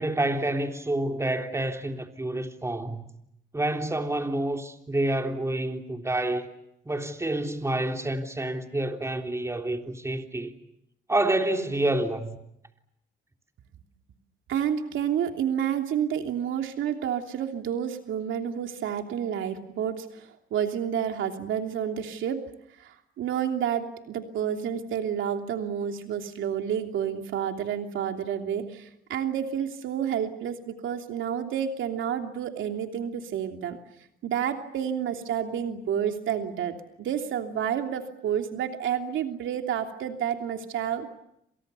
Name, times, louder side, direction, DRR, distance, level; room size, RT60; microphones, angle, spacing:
voice 1, 0.0-3.0 3.5-6.5 6.8-10.5 11.1-12.4, right 1 dB, 15° right, 3.4 m, -28 dB
voice 2, 14.5-22.4 22.8-33.8 34.2-41.1, right 9 dB, 75° right, 3.1 m, -30 dB
29.0 x 27.5 x 7.0 m
cardioid pair, 90°, 20 cm